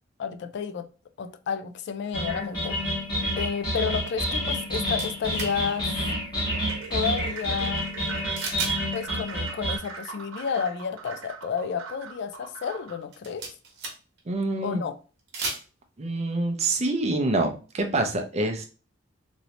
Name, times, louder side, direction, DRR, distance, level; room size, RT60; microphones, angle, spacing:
voice 1, 0.2-0.9 1.2-2.9 3.3-5.9 6.9-7.8 8.9-13.5 14.6-15.0, left 6 dB, 55° left, 0.3 m, -31 dB
sound 1, 2.1-9.8, equal, 20° left, 1.4 m, -29 dB
sound 2, 5.0-5.5 8.4-8.8 9.1-9.2 13.0-14.2 15.2-15.6, right 3 dB, 55° right, 1.0 m, -33 dB
sound 3, 6.6-13.1, right 5 dB, 85° right, 0.9 m, -41 dB
voice 2, 14.3-14.8 16.0-18.7, right 2 dB, 30° right, 0.5 m, -26 dB
3.1 x 2.7 x 2.8 m
head